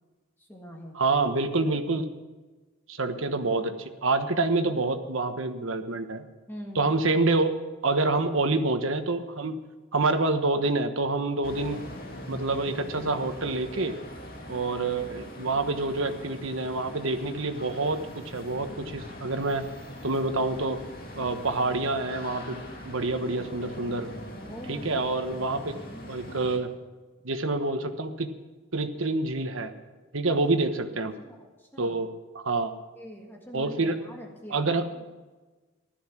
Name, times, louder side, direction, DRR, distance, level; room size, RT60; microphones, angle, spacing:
voice 1, 0.4-1.0 6.5-7.1 15.0-15.4 24.3-26.1 31.2-31.9 33.0-35.1, equal, 10° left, 0 dB, 1.6 m, -45 dB
voice 2, 0.9-2.0 2.9-6.2 6.7-7.6 7.8-9.6 9.9-11.8 12.3-13.9 14.5-19.6 20.0-20.8 21.2-24.1 24.7-25.8 26.1-26.7 27.2-28.3 28.7-29.7 30.1-31.1 31.8-32.7 33.5-34.0 34.5-34.9, right 3 dB, 75° right, 8 dB, 1.3 m, -27 dB
sound 1, 11.4-26.6, equal, 45° left, 2.6 m, -42 dB
15.5 x 13.0 x 6.1 m, 1.3 s
head